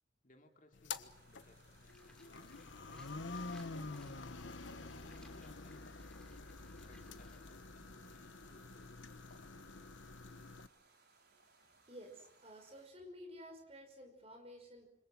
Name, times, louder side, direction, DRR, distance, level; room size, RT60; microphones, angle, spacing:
voice 1, 0.2-3.1 4.0-6.0 6.6-9.0, left 1 dB, 40° left, 3 dB, 2.8 m, -66 dB
sound 1, 0.7-10.7, left 3 dB, 75° left, 1.3 m, -48 dB
sound 2, 1.0-12.9, right 3 dB, 55° right, 5.5 m, -68 dB
Livestock farm animals working animals, 1.9-7.4, left 1 dB, 5° left, 3.3 m, -65 dB
voice 2, 11.6-14.9, equal, 30° right, 5 dB, 5.7 m, -53 dB
28.0 x 26.0 x 6.2 m, 0.70 s
head